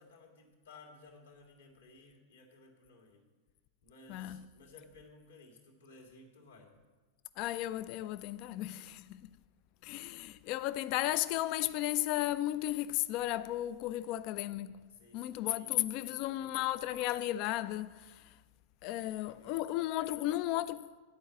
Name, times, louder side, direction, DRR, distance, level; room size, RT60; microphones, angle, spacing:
voice 1, 0.0-3.2 3.8-6.7 13.9-14.1 14.9-16.8 19.0-20.4, left 3 dB, 85° left, 1.8 m, -58 dB
voice 2, 4.1-4.5 7.4-9.3 9.8-14.8 15.1-18.4 18.8-20.9, left 15 dB, 50° left, 0.3 m, -34 dB
10.0 x 4.6 x 7.5 m
hypercardioid pair, 95°, 0 cm